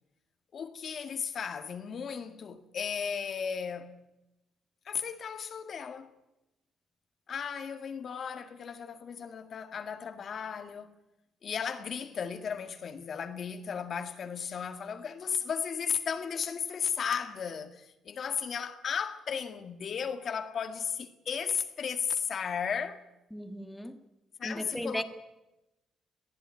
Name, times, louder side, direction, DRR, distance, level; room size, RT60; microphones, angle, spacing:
voice 1, 0.5-3.9 4.9-6.1 7.3-10.9 11.4-23.0 24.4-25.0, left 7 dB, 55° left, 1.8 m, -35 dB
voice 2, 23.3-24.0 24.4-25.0, equal, 5° left, 2.0 m, -36 dB
22.0 x 15.0 x 9.6 m
cardioid pair, 90°, 0 cm